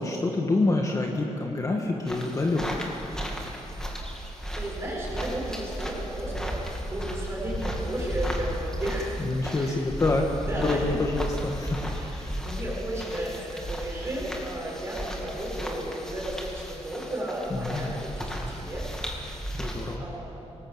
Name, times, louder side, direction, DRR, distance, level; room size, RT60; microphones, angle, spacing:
voice 1, 0.0-2.9 9.2-12.4 17.5-17.9 19.6-20.0, left 2 dB, 30° left, 1 dB, 1.6 m, -27 dB
sound 1, 2.1-20.0, equal, 5° left, 2.5 m, -34 dB
voice 2, 4.5-9.2 9.5-9.8 10.4-11.0 11.9-12.2 12.4-18.8 20.0-20.4, right 1 dB, 20° right, -4 dB, 6.3 m, -34 dB
26.5 x 19.0 x 8.0 m, 3.0 s
wide cardioid pair, 175°, 12 cm